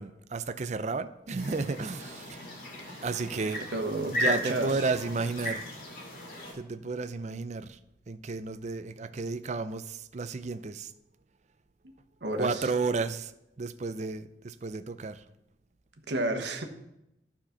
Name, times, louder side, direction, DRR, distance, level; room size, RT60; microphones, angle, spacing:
voice 1, 0.0-2.4 3.0-3.6 4.1-5.7 6.5-7.8 8.1-10.9 12.4-13.3 13.6-15.2, right 4 dB, 40° right, 0.5 m, -32 dB
sound 1, 1.4-6.5, left 1 dB, 55° left, 2.4 m, -36 dB
voice 2, 3.7-4.8 12.2-12.7 16.1-16.6, right 2 dB, 70° right, 1.2 m, -31 dB
12.0 x 4.4 x 5.7 m
head